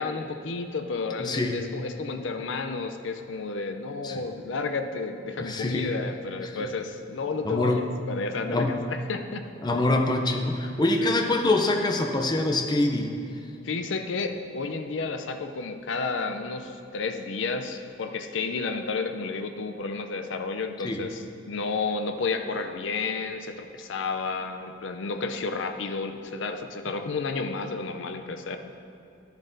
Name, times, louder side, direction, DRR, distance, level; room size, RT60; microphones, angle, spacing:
voice 1, 0.0-9.5 11.0-11.4 13.6-28.6, left 4 dB, 80° left, 7 dB, 0.5 m, -31 dB
voice 2, 1.2-1.6 4.0-4.2 5.4-5.9 6.4-6.5 7.4-7.8 8.5-8.8 9.6-13.1 20.8-21.0, left 2 dB, 20° left, 2 dB, 0.5 m, -25 dB
13.0 x 7.3 x 2.7 m, 2.7 s
head